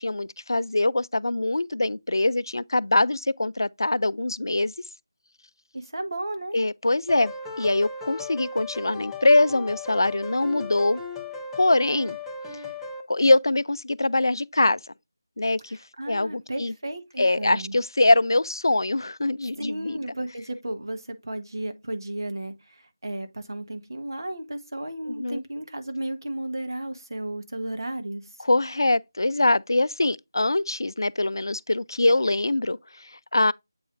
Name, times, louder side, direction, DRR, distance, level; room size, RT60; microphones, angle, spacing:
voice 1, 0.0-4.7 6.5-11.0 11.6-12.2 13.1-14.8 15.4-15.8 16.1-16.7 17.2-20.0 25.1-25.4 28.4-33.5, left 2 dB, 75° left, 0.3 m, -23 dB
voice 2, 5.7-6.6 15.7-17.8 19.6-28.2, right 1 dB, 65° right, 1.2 m, -34 dB
sound 1, 7.1-13.0, left 3 dB, 5° left, 0.5 m, -36 dB
7.6 x 4.8 x 2.6 m
figure-of-eight pair, 165°, 2 cm